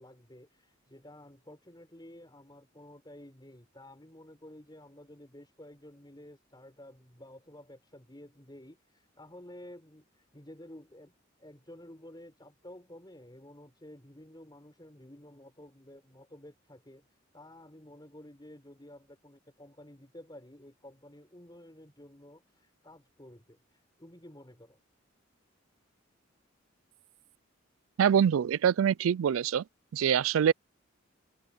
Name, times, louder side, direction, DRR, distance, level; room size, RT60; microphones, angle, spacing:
voice 1, 0.0-8.8 9.2-10.1 10.3-11.1 11.4-17.0 17.3-23.6 24.0-24.8, left 1 dB, 20° left, 5.6 m, -52 dB
voice 2, 28.0-29.6 29.9-30.5, right 8 dB, 85° right, 0.3 m, -24 dB
head